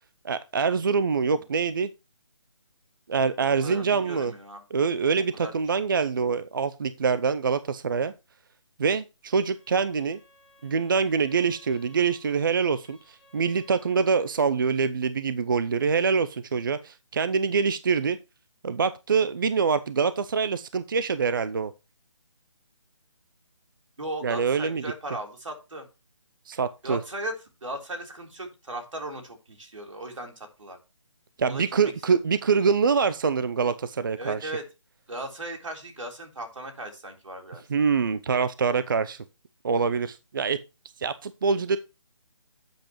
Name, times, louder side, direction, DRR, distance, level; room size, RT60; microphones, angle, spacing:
voice 1, 0.2-1.9 3.1-4.3 4.7-8.1 8.8-10.2 10.6-18.2 18.6-21.7 24.2-24.8 26.5-27.0 31.4-34.5 37.7-39.2 39.6-40.6 41.0-41.8, right 5 dB, 40° right, 14 dB, 0.5 m, -25 dB
voice 2, 3.4-4.6 5.4-5.5 24.0-25.9 26.8-27.3 27.6-30.8 31.5-31.6 34.2-34.6 35.1-37.6, right 1 dB, 80° right, 3 dB, 3.7 m, -37 dB
Bowed string instrument, 9.4-14.6, left 2 dB, 5° left, 4.9 m, -58 dB
12.0 x 7.8 x 3.0 m, 0.29 s
hypercardioid pair, 165°, 16 cm